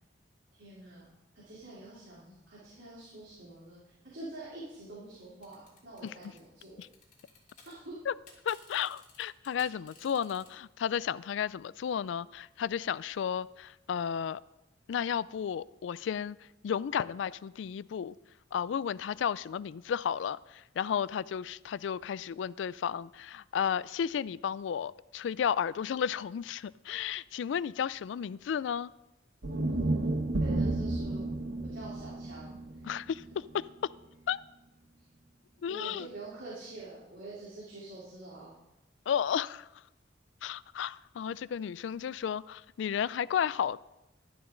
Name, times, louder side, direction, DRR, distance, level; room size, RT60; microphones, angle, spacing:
voice 1, 0.6-1.1 1.4-3.8 4.1-6.8 7.7-7.9 30.4-31.3 31.6-32.5 35.7-38.5, right 2 dB, 65° right, 3.5 m, -46 dB
sound 1, 5.4-7.7 8.0-10.5, left 4 dB, 45° left, 2.9 m, -56 dB
voice 2, 8.5-14.4 14.9-16.4 16.6-18.1 18.5-28.9 32.8-33.7 34.3-34.4 35.6-36.1 39.1-39.7 40.4-43.8, left 8 dB, 80° left, 0.3 m, -33 dB
sound 2, 29.4-33.7, right 2 dB, 80° right, 1.1 m, -32 dB
12.5 x 11.0 x 3.9 m
head